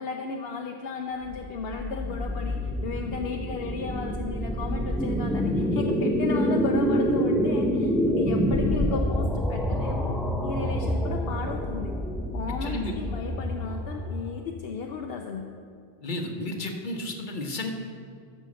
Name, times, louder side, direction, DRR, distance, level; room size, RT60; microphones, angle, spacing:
voice 1, 0.0-10.2 10.4-11.9 12.3-15.5, left 5 dB, 70° left, 3 dB, 0.8 m, -34 dB
sound 1, 1.2-14.4, equal, ahead, 0.7 m, -27 dB
voice 2, 12.6-12.9 16.0-17.7, left 1 dB, 50° left, 2 dB, 1.2 m, -32 dB
13.0 x 5.2 x 6.3 m, 2.3 s
omnidirectional pair, 1.1 m